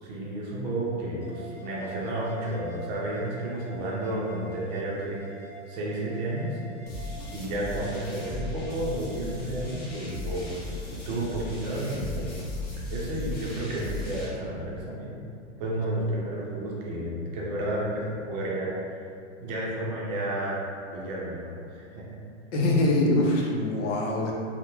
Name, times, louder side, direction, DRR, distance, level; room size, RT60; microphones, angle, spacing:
voice 1, 0.0-5.2 5.7-6.6 7.3-10.5 10.9-12.4 12.9-15.1 15.6-19.0 19.4-20.7 20.9-22.2, right 1 dB, 35° right, -4 dB, 0.5 m, -31 dB
sound 1, 1.2-10.2, right 3 dB, 10° right, 0.8 m, -47 dB
sound 2, 6.9-14.3, left 2 dB, 25° left, 0.5 m, -36 dB
voice 2, 22.5-24.3, left 2 dB, 80° left, -2 dB, 0.7 m, -23 dB
2.3 x 2.1 x 3.0 m, 2.4 s
supercardioid pair, 150°, 36 cm